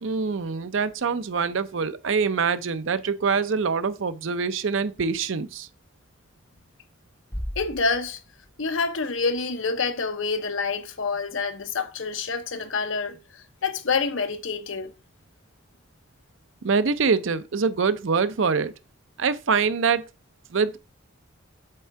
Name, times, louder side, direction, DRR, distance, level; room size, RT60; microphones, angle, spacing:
voice 1, 0.0-5.7 16.6-18.7 19.2-20.0 20.5-20.8, right 5 dB, 70° right, 0.6 m, -24 dB
Bass drum, 7.3-9.0, equal, 15° left, 1.0 m, -37 dB
voice 2, 7.6-8.2 8.6-14.9, left 4 dB, 70° left, 0.8 m, -27 dB
7.7 x 3.6 x 4.6 m
head